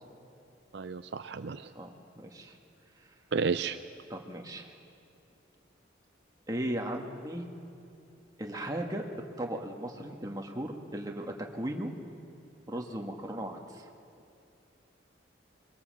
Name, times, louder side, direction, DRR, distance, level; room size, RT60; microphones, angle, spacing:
voice 1, 0.7-1.7 3.3-3.8, right 5 dB, 60° right, 10 dB, 0.5 m, -32 dB
voice 2, 1.8-2.6 4.1-4.7 6.5-7.5 8.4-9.0 9.4-11.9 12.7-13.8, right 1 dB, 20° right, 1 dB, 1.7 m, -37 dB
22.0 x 22.0 x 7.7 m, 2.6 s
head